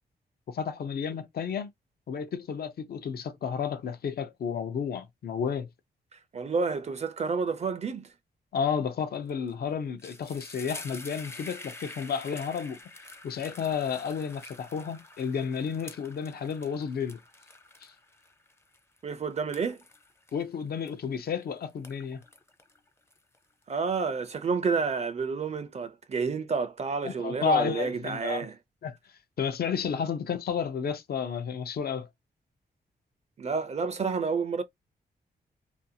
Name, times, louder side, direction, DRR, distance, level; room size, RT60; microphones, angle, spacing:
voice 1, 0.5-1.7 2.1-5.7 8.5-12.8 13.2-17.2 17.8-17.9 20.3-22.2 27.0-28.5 28.8-29.0 29.4-32.1, left 6 dB, 70° left, 0.6 m, -31 dB
voice 2, 6.1-8.1 19.0-19.8 23.7-28.6 33.4-34.6, right 5 dB, 40° right, 0.4 m, -30 dB
sound 1, 9.3-9.5 9.8-21.3 21.7-23.6, left 2 dB, 15° left, 0.5 m, -47 dB
2.6 x 2.3 x 2.7 m
cardioid pair, 100°, 17 cm